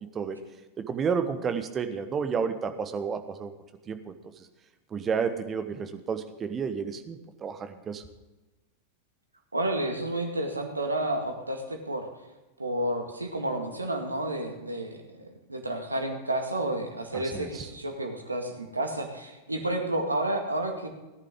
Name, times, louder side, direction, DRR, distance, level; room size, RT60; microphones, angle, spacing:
voice 1, 0.8-3.5 3.9-4.5 4.9-8.0 17.1-17.7, right 6 dB, 25° right, 9 dB, 1.2 m, -31 dB
voice 2, 9.5-12.1 12.6-20.9, right 1 dB, 80° right, 4 dB, 2.0 m, -31 dB
17.5 x 10.5 x 3.7 m, 1.1 s
figure-of-eight pair, 90°, 0 cm